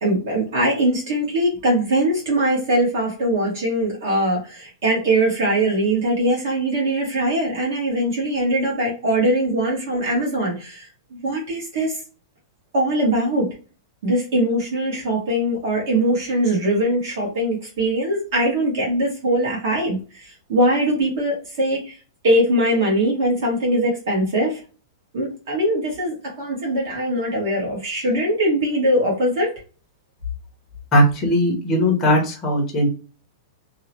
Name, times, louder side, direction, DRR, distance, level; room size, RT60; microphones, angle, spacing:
voice 1, 0.0-12.0 12.7-13.5 14.0-22.0 22.2-24.6 25.1-29.5, right 1 dB, 50° right, -2 dB, 1.1 m, -21 dB
voice 2, 30.9-32.9, equal, 10° left, -1 dB, 0.6 m, -18 dB
2.7 x 2.0 x 2.9 m, 0.35 s
supercardioid pair, 180°, 2 cm